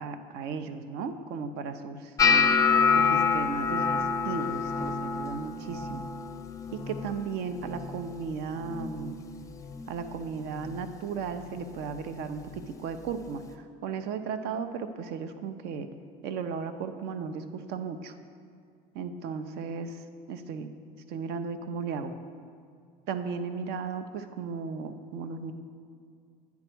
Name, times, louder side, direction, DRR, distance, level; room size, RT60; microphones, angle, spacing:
voice 1, 0.0-2.5 2.9-6.1 6.7-9.2 9.9-15.9 16.2-18.2 18.9-20.7 21.1-22.1 23.1-25.5, right 5 dB, 55° right, 9 dB, 0.6 m, -35 dB
sound 1, 2.2-8.3 8.6-9.1 9.4-10.0 10.6-10.8 12.6-12.7, left 5 dB, 15° left, 0.6 m, -27 dB
9.7 x 3.5 x 6.1 m, 2.2 s
hypercardioid pair, 70°, 21 cm